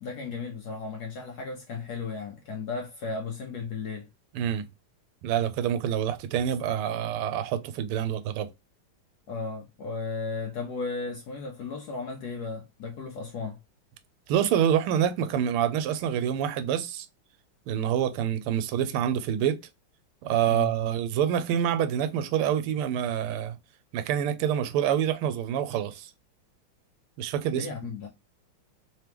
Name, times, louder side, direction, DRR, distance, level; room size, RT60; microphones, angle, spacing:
voice 1, 0.0-4.1 9.3-13.6 20.5-20.7 27.5-28.1, left 4 dB, 70° left, 1.0 m, -35 dB
voice 2, 4.3-4.7 5.2-8.5 14.3-17.1 17.7-19.6 20.2-23.6 23.9-26.1 27.2-27.7, right 9 dB, 90° right, 1.5 m, -26 dB
3.7 x 3.0 x 3.3 m
omnidirectional pair, 2.3 m